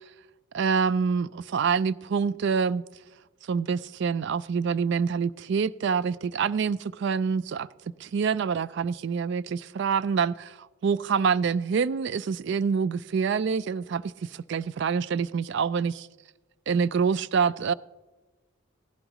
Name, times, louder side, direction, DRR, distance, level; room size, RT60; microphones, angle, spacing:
voice 1, 0.5-2.8 3.4-7.7 8.0-16.1 16.7-17.7, right 6 dB, 55° right, 0.3 m, -26 dB
16.5 x 15.0 x 3.0 m
head